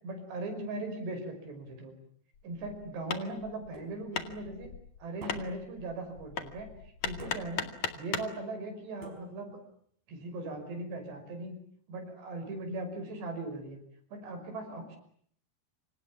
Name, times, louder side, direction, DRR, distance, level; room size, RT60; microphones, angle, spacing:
voice 1, 0.0-1.9 2.4-4.7 5.0-7.7 7.9-9.6 10.1-11.5 11.9-13.8 14.1-15.0, right 2 dB, 85° right, 6 dB, 7.8 m, -39 dB
Hammer, 2.3-8.4, left 7 dB, 50° left, 3.1 m, -38 dB
sound 1, 3.7-4.3 5.2-5.8 7.2-7.8 9.0-9.7, right 2 dB, 60° right, 6.9 m, -48 dB
28.0 x 26.5 x 7.3 m, 0.64 s
omnidirectional pair, 4.8 m